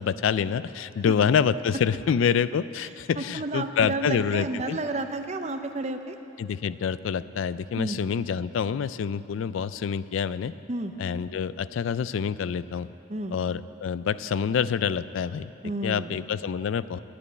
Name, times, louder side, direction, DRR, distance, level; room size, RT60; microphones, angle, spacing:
voice 1, 0.0-4.8 6.4-10.5 11.0-12.9 13.3-15.5 15.8-17.0, left 7 dB, 75° left, 16 dB, 0.3 m, -27 dB
voice 2, 3.2-6.2 7.7-8.0 10.7-10.9 13.1-13.4 15.6-16.2, right 2 dB, 35° right, 7 dB, 0.6 m, -31 dB
11.5 x 8.5 x 9.3 m, 2.7 s
head